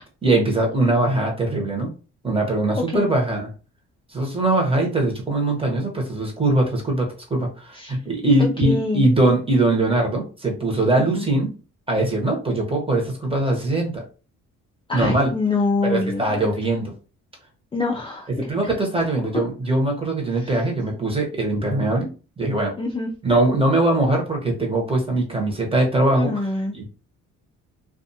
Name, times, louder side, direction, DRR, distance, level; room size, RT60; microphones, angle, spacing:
voice 1, 0.2-1.9 2.2-3.5 4.1-11.5 11.9-14.0 14.9-15.3 15.8-16.9 18.4-22.1 22.4-22.7 23.2-26.3 26.7-26.9, right 2 dB, 20° right, 1 dB, 1.0 m, -21 dB
voice 2, 8.4-9.1 11.0-11.3 14.9-16.5 17.7-18.7 19.3-19.4 20.3-20.6 22.8-23.1 26.1-26.7, left 3 dB, 15° left, -1 dB, 0.4 m, -26 dB
2.4 x 2.4 x 2.7 m, 0.34 s
cardioid pair, 90°, 30 cm